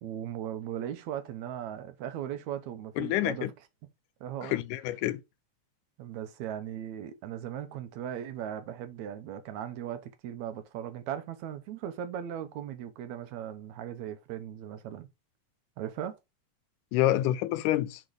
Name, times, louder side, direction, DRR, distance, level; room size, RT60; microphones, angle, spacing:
voice 1, 0.0-3.5 4.2-4.5 6.0-15.1 15.8-16.1, right 10 dB, 70° right, 2.1 m, -38 dB
voice 2, 3.0-3.5 4.4-5.2 16.9-18.0, left 14 dB, 85° left, 2.1 m, -27 dB
6.5 x 4.5 x 4.8 m
omnidirectional pair, 3.7 m